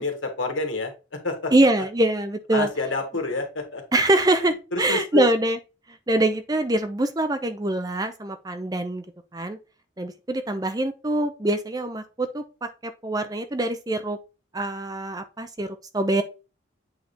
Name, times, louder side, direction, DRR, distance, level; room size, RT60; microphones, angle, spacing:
voice 1, 0.0-1.5 2.5-3.8 4.7-5.2, left 3 dB, 80° left, 1.8 m, -28 dB
voice 2, 1.5-2.7 3.9-5.6 6.1-9.0 9.3-9.6 10.0-14.2 14.5-16.2, right 1 dB, 20° right, 0.6 m, -24 dB
8.0 x 3.3 x 4.2 m
head